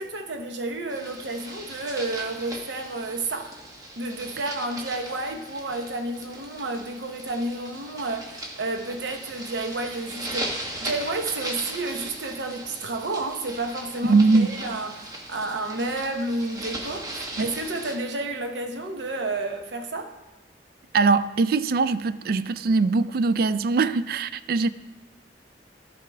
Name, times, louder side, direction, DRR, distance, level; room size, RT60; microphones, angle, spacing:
voice 1, 0.0-3.5 4.0-20.1, right 2 dB, 85° right, 0.9 m, -31 dB
sound 1, 0.9-18.0, right 1 dB, 20° right, 1.0 m, -38 dB
voice 2, 14.1-14.6 17.4-17.5 20.9-24.7, right 4 dB, 55° right, 0.3 m, -21 dB
13.5 x 4.8 x 3.4 m
head